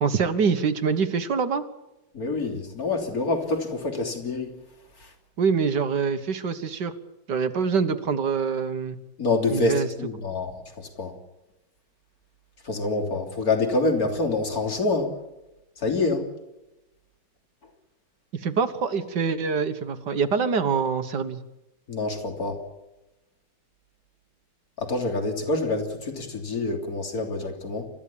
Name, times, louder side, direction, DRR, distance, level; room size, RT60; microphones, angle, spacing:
voice 1, 0.0-1.6 5.4-6.9 7.3-9.0 9.5-9.9 18.3-21.4, right 5 dB, 55° right, 10 dB, 1.9 m, -25 dB
voice 2, 2.1-4.6 5.0-5.1 9.2-11.1 12.6-15.1 15.8-16.3 21.9-22.6 24.8-27.9, left 3 dB, 45° left, 3 dB, 3.7 m, -26 dB
29.0 x 14.5 x 8.7 m, 0.98 s
omnidirectional pair, 2.3 m